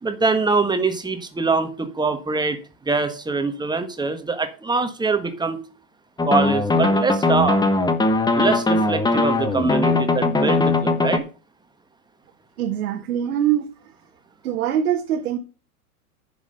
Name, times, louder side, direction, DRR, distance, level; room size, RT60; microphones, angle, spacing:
voice 1, 0.0-2.6 2.8-5.6 6.2-7.6 8.3-11.2, right 4 dB, 10° right, 1.4 m, -23 dB
sound 1, 6.2-11.2, left 2 dB, 10° left, 1.2 m, -20 dB
voice 2, 12.6-13.7 14.4-15.4, right 10 dB, 70° right, 1.5 m, -23 dB
9.9 x 6.2 x 5.6 m
hypercardioid pair, 105°, 46 cm